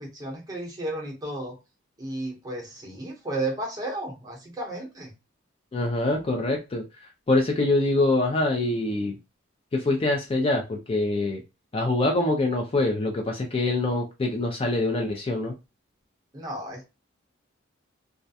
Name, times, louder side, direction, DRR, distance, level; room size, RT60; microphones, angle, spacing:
voice 1, 0.0-1.6 2.0-5.1 16.3-16.9, right 2 dB, 20° right, -1 dB, 0.8 m, -33 dB
voice 2, 5.7-6.8 7.3-9.2 9.7-11.4 11.7-15.5, left 2 dB, 30° left, 2 dB, 0.4 m, -24 dB
2.3 x 2.1 x 2.6 m, 0.27 s
head